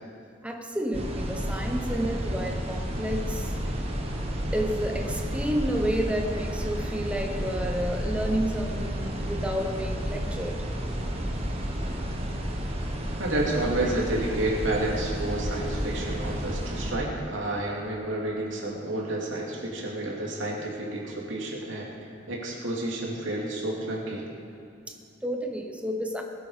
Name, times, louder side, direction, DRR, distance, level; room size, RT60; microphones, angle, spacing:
voice 1, 0.4-3.5 4.5-10.7 24.9-26.2, equal, 5° right, 3 dB, 1.0 m, -30 dB
sound 1, 0.9-16.9, equal, 30° right, 1.5 m, -31 dB
voice 2, 13.2-21.9 22.3-24.2, right 1 dB, 75° right, -3 dB, 2.9 m, -30 dB
20.5 x 8.5 x 5.1 m, 2.5 s
head